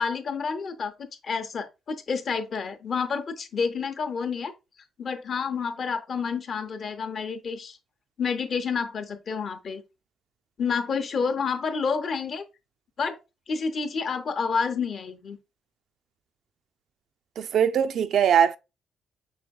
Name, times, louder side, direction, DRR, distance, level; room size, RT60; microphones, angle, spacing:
voice 1, 0.0-4.5 5.0-7.8 8.2-9.8 10.6-12.4 13.0-13.2 13.5-15.4, left 5 dB, 50° left, 0.7 m, -29 dB
voice 2, 17.4-18.6, right 8 dB, 70° right, 0.3 m, -21 dB
5.6 x 3.5 x 2.3 m
cardioid pair, 90°, 0 cm